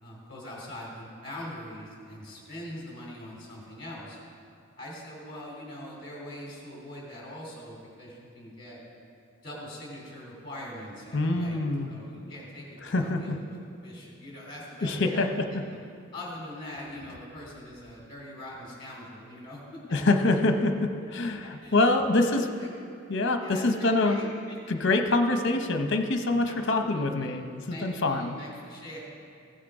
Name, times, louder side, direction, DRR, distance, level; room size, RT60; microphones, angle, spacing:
voice 1, 0.0-4.2 4.8-8.8 9.4-11.6 11.9-15.8 16.1-19.8 20.1-20.2 21.2-21.8 22.1-22.7 23.4-24.6 26.5-27.4 27.7-29.0, left 1 dB, 25° left, -4 dB, 2.9 m, -43 dB
voice 2, 11.1-11.9 12.8-13.4 14.8-15.4 19.9-22.4 23.1-24.2 24.7-28.3, left 2 dB, 55° left, 5 dB, 0.8 m, -25 dB
15.5 x 6.5 x 4.8 m, 2.4 s
head